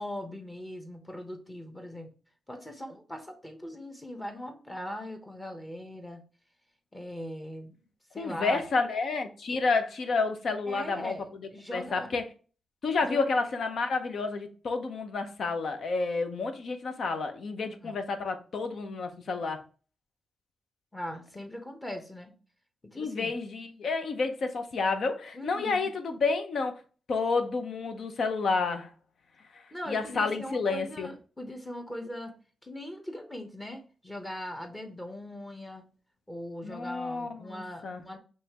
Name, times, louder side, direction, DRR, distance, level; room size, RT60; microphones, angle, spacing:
voice 1, 0.0-2.1 2.5-6.2 6.9-7.7 8.1-8.6 9.5-9.6 10.7-12.1 13.0-13.3 17.8-18.0 20.9-22.3 22.8-23.3 25.3-25.9 29.7-32.3 32.6-35.8 36.3-38.2, left 1 dB, 15° left, 1.0 m, -40 dB
voice 2, 8.2-11.1 11.7-12.2 12.8-19.6 23.0-26.8 27.1-28.9 29.5-31.1 36.6-38.0, left 4 dB, 65° left, 0.7 m, -30 dB
5.5 x 3.2 x 2.9 m
cardioid pair, 105°, 0 cm